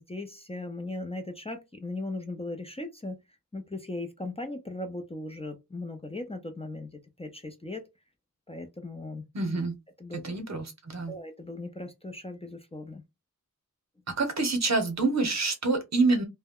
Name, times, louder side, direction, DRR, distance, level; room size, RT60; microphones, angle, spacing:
voice 1, 0.0-3.2 3.5-7.9 8.5-9.3 10.0-10.2 11.1-13.0, left 2 dB, 20° left, 0.5 m, -38 dB
voice 2, 9.3-9.8 10.1-11.1 14.2-16.2, right 3 dB, 55° right, 0.9 m, -27 dB
2.2 x 2.1 x 3.5 m
wide cardioid pair, 80°, 32 cm